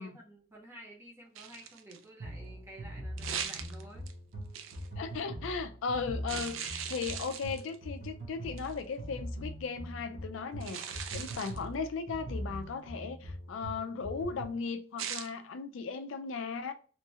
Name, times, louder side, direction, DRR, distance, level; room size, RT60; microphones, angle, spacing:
voice 1, 0.0-4.1, right 1 dB, 10° right, 0.8 m, -51 dB
sound 1, 1.4-2.0 3.2-4.1 4.5-4.9 6.3-7.8 8.6-8.8 10.6-11.6 15.0-15.3, right 8 dB, 75° right, 0.4 m, -39 dB
sound 2, 2.2-14.7, equal, 55° right, 1.0 m, -42 dB
voice 2, 5.0-16.7, left 5 dB, 75° left, 0.4 m, -37 dB
3.1 x 2.3 x 2.7 m
head